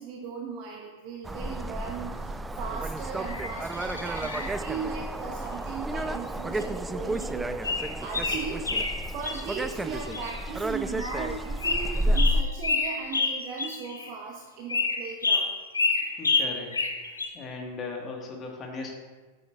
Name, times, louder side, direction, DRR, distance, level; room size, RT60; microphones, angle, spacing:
voice 1, 0.0-8.6 9.0-15.5, right 5 dB, 40° right, 0 dB, 0.9 m, -37 dB
sound 1, 1.2-12.4, right 1 dB, 10° right, 0.3 m, -31 dB
sound 2, 3.2-4.5 6.6-6.7 7.2-7.3 7.6-9.6 10.0-10.5 10.9-11.3 11.6-14.1 14.7-17.3, left 4 dB, 75° left, 0.8 m, -29 dB
voice 2, 16.2-16.7 17.3-18.9, left 4 dB, 30° left, 1 dB, 1.5 m, -37 dB
8.6 x 8.3 x 2.4 m, 1.3 s
figure-of-eight pair, 90°, 0 cm